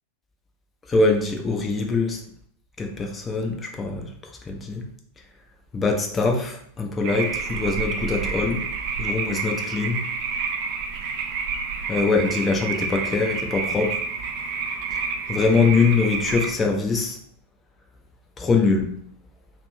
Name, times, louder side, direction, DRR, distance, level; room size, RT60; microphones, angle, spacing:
voice 1, 0.9-2.2 2.8-4.1 4.5-4.8 5.7-8.6 9.0-10.0 11.9-14.0 15.3-17.2 18.4-19.0, left 4 dB, 15° left, 2 dB, 0.5 m, -23 dB
Pacific Treefrogs in Mating Season, 7.0-16.5, right 5 dB, 45° right, 0.3 m, -29 dB
2.5 x 2.1 x 3.0 m, 0.64 s
figure-of-eight pair, 90°, 0 cm